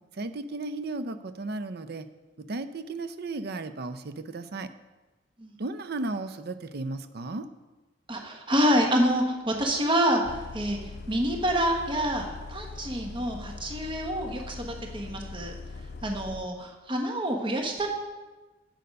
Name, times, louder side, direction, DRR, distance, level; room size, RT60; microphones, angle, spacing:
voice 1, 0.1-2.1 2.4-4.7 5.6-7.5, right 2 dB, 55° right, 11 dB, 0.6 m, -35 dB
voice 2, 8.1-15.6 16.0-17.9, equal, 25° right, 2 dB, 1.1 m, -27 dB
Bus, 10.2-16.4, left 3 dB, 55° left, 0.5 m, -41 dB
7.7 x 6.8 x 5.3 m, 1.2 s
head